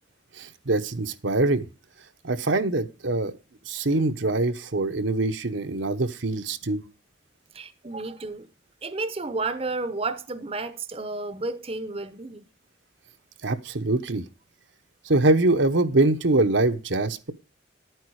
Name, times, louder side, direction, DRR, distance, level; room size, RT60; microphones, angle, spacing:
voice 1, 0.4-1.6 2.2-3.3 3.7-6.8 13.4-14.2 15.0-17.3, right 2 dB, 75° right, 1.1 m, -23 dB
voice 2, 7.5-8.5 8.8-12.5, right 3 dB, 30° right, 0.8 m, -31 dB
12.0 x 9.4 x 4.8 m
head